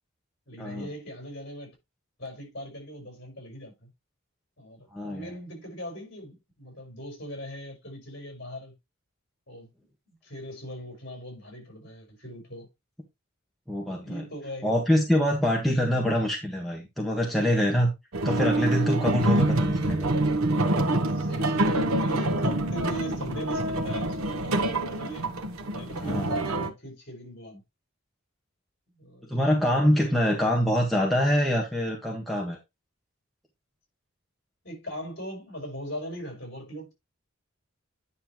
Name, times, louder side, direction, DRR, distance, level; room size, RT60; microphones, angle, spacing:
voice 1, 0.5-1.7 2.2-3.9 4.6-8.7 9.5-9.7 10.2-12.7 13.9-14.9 15.4-15.5 15.8-16.0 19.2-19.4 21.0-25.3 25.7-27.6 28.9-29.4 30.1-30.3 30.5-30.6 34.6-36.9, equal, 50° left, 5.0 m, -40 dB
voice 2, 4.9-5.3 13.7-14.2 14.6-17.9 18.2-20.1 26.0-26.3 29.3-32.6, equal, ahead, 1.6 m, -25 dB
sound 1, 18.1-26.7, right 1 dB, 85° right, 1.1 m, -26 dB
9.8 x 5.6 x 3.0 m
head